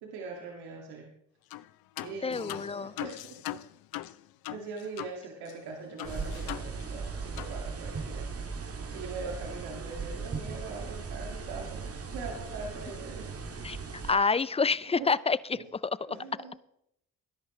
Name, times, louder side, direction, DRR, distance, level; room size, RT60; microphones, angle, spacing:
voice 1, 0.0-1.1 2.0-3.6 4.5-8.2 8.9-11.8 12.1-13.4 14.9-15.1 15.5-15.6 16.1-16.7, right 4 dB, 85° right, 0 dB, 2.3 m, -42 dB
sound 1, 1.5-1.7 2.0-5.2 5.5-5.6 6.0-7.1 7.4-7.6, left 16 dB, 70° left, 0.6 m, -40 dB
voice 2, 2.2-2.9 13.6-13.8 14.1-15.6, left 4 dB, 15° left, 20 dB, 0.5 m, -27 dB
sound 2, 6.0-14.1, right 4 dB, 40° right, 1.8 m, -38 dB
20.5 x 11.0 x 3.2 m, 0.75 s
supercardioid pair, 60°, 38 cm